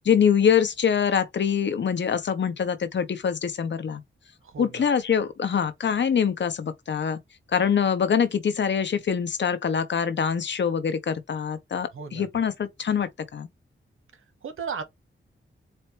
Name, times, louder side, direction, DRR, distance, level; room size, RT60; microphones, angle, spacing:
voice 1, 0.0-4.0 4.6-7.2 7.5-13.5, left 7 dB, 60° left, 0.8 m, -24 dB
voice 2, 11.9-12.3 14.4-14.8, right 5 dB, 80° right, 1.1 m, -34 dB
4.4 x 2.7 x 3.1 m
wide cardioid pair, 175°, 21 cm